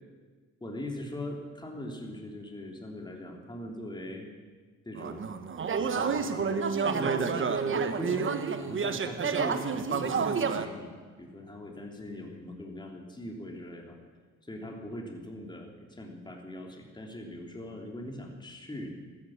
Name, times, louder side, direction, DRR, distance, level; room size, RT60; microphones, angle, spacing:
voice 1, 0.6-4.3 4.8-5.4 5.7-10.9 11.2-14.0 14.4-18.9, left 1 dB, 15° left, 1 dB, 3.2 m, -41 dB
sound 1, 5.0-10.7, right 5 dB, 40° right, 1.2 m, -29 dB
15.0 x 13.5 x 6.6 m, 1.4 s
cardioid pair, 90°, 30 cm